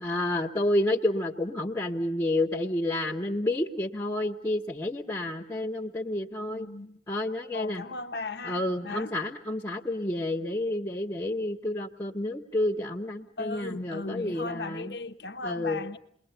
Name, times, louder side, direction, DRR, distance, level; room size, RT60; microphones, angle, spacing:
voice 1, 0.0-6.7 7.1-7.8 8.4-14.9 15.4-15.8, left 1 dB, 20° left, 1.2 m, -30 dB
voice 2, 6.4-7.0 7.5-9.2 13.4-16.0, left 3 dB, 70° left, 1.2 m, -37 dB
29.0 x 21.5 x 8.1 m
head